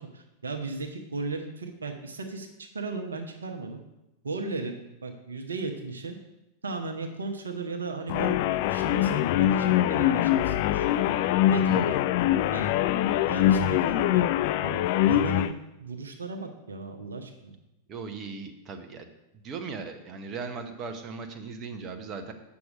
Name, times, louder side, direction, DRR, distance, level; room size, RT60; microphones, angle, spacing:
voice 1, 0.0-3.8 4.2-4.7 5.0-6.2 6.6-8.4 8.7-10.9 11.5-12.0 12.5-12.7 13.3-14.3 14.6-15.5 15.8-17.6, right 3 dB, 70° right, 4 dB, 0.9 m, -36 dB
sound 1, 8.1-15.5, left 12 dB, 50° left, 0.4 m, -23 dB
voice 2, 17.9-19.1 19.4-22.3, right 5 dB, 30° right, 6 dB, 1.0 m, -38 dB
8.3 x 6.3 x 5.0 m, 0.93 s
figure-of-eight pair, 90°, 0 cm